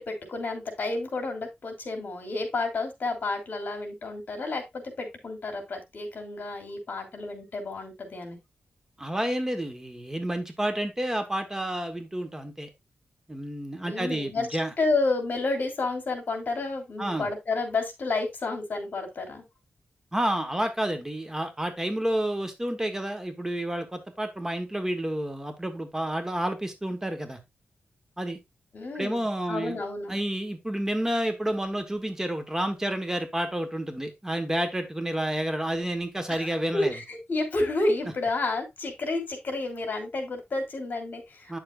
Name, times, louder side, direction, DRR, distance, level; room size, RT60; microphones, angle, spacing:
voice 1, 0.0-8.4 13.8-14.5 14.8-19.4 28.7-30.2 36.3-41.6, left 3 dB, 55° left, 5 dB, 3.0 m, -30 dB
voice 2, 9.0-12.7 13.3-14.7 17.0-17.3 20.1-27.4 28.2-28.4 28.9-29.8 30.1-36.9 41.5-41.6, right 1 dB, 15° right, 6 dB, 1.3 m, -30 dB
9.5 x 7.0 x 2.5 m, 0.20 s
wide cardioid pair, 115°, 4 cm